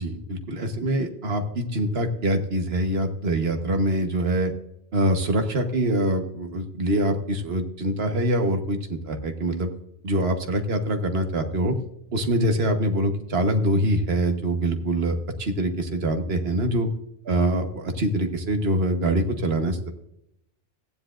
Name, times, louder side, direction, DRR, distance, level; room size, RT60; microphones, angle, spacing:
voice 1, 0.0-4.5 4.9-9.7 10.0-11.7 12.1-16.9 17.3-19.9, right 1 dB, 70° right, 6 dB, 1.4 m, -24 dB
15.5 x 9.9 x 2.5 m, 0.77 s
omnidirectional pair, 1.1 m